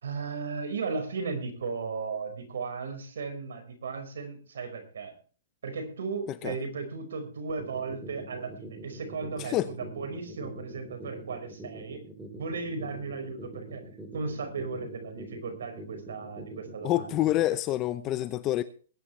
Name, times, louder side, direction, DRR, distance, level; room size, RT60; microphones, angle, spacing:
voice 1, 0.0-5.1 5.6-12.0 12.4-13.8 14.1-17.1, right 4 dB, 85° right, 5.1 m, -36 dB
sound 1, 7.5-17.5, right 1 dB, 5° right, 7.4 m, -44 dB
voice 2, 9.4-9.7 16.8-18.6, left 14 dB, 25° left, 0.7 m, -27 dB
21.0 x 10.0 x 3.3 m
hypercardioid pair, 150°, 0 cm